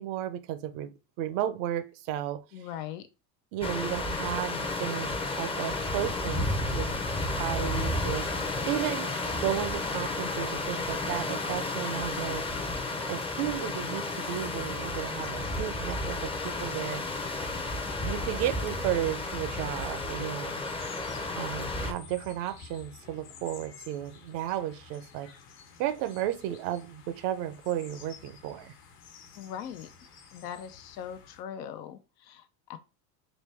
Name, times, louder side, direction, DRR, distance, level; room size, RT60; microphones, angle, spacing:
voice 1, 0.0-2.4 3.5-6.9 7.3-12.5 13.1-17.0 18.0-20.6 21.3-25.3 25.8-28.7, right 12 dB, 65° right, 0.7 m, -34 dB
voice 2, 2.5-3.1 29.4-29.9 30.3-32.8, left 9 dB, 80° left, 0.7 m, -40 dB
sound 1, 3.6-21.9, left 2 dB, 10° left, 0.6 m, -32 dB
sound 2, 12.9-31.4, left 6 dB, 60° left, 1.2 m, -52 dB
4.0 x 2.2 x 3.3 m
supercardioid pair, 90°, 49 cm